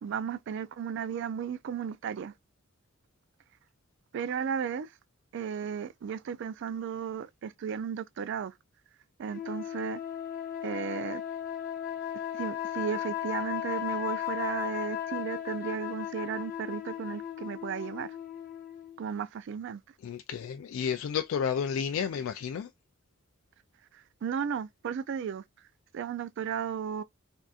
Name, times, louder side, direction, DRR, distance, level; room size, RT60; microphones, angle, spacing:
voice 1, 0.0-2.3 4.1-4.9 5.3-8.5 9.2-10.0 10.6-11.2 12.3-18.1 19.0-19.8 24.2-25.4 25.9-27.0, right 7 dB, 60° right, 0.3 m, -34 dB
sound 1, 9.3-19.0, left 10 dB, 45° left, 0.8 m, -36 dB
voice 2, 20.0-22.7, left 7 dB, 75° left, 0.3 m, -31 dB
3.5 x 2.6 x 2.4 m
head